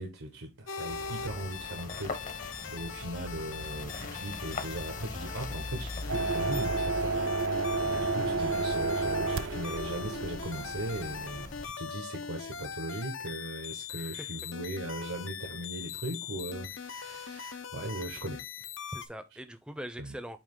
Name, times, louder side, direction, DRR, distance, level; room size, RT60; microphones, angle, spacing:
voice 1, 0.0-7.1 7.3-18.4 20.0-20.1, right 1 dB, 85° right, 1.3 m, -39 dB
sound 1, 0.7-19.1, left 7 dB, 60° left, 0.7 m, -41 dB
sound 2, 0.9-11.7, left 2 dB, 40° left, 0.9 m, -42 dB
sound 3, 6.1-11.5, right 3 dB, 65° right, 0.6 m, -31 dB
voice 2, 7.9-8.3 13.9-14.3 18.9-20.4, equal, 5° right, 0.6 m, -43 dB
8.7 x 3.0 x 3.7 m
head